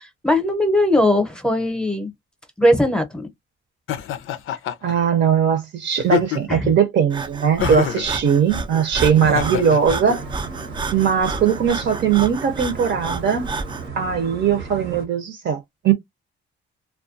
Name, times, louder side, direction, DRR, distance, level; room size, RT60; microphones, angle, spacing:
voice 1, 0.0-2.1 2.6-3.3 6.5-6.7, left 1 dB, 5° left, 0.7 m, -19 dB
Laughter, 3.9-4.9 6.0-6.7 7.6-8.1 9.2-10.0, left 11 dB, 85° left, 0.5 m, -25 dB
voice 2, 4.8-10.2 10.9-13.5 14.0-15.9, right 7 dB, 60° right, 0.6 m, -19 dB
Breathing, 7.1-13.9, right 4 dB, 25° right, 0.3 m, -30 dB
sound 1, 9.8-15.1, right 4 dB, 90° right, 1.0 m, -35 dB
2.3 x 2.2 x 2.5 m
cardioid pair, 115°, 20 cm